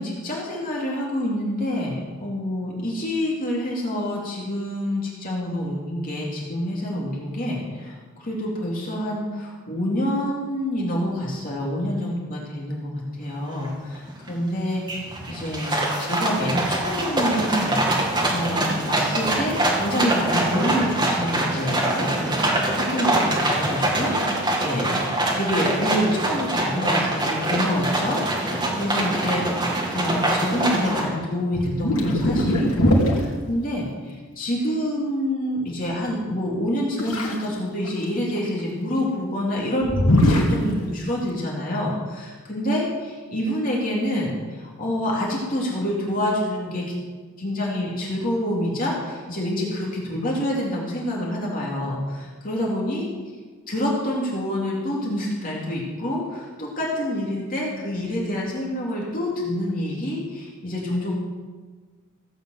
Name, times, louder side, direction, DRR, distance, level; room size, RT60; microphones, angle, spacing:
voice 1, 0.0-22.3 22.8-24.9 25.3-46.9 47.4-53.1 53.7-61.1, left 1 dB, 40° left, -4 dB, 3.0 m, -27 dB
sound 1, 13.6-13.7 14.1-14.5 14.9-31.0, right 1 dB, 20° right, 2.5 m, -24 dB
sound 2, 31.0-31.2 31.5-33.2 37.0-37.5 37.8-38.5 39.8-40.6, left 1 dB, 80° left, 2.7 m, -21 dB
16.0 x 7.9 x 8.0 m, 1.4 s
head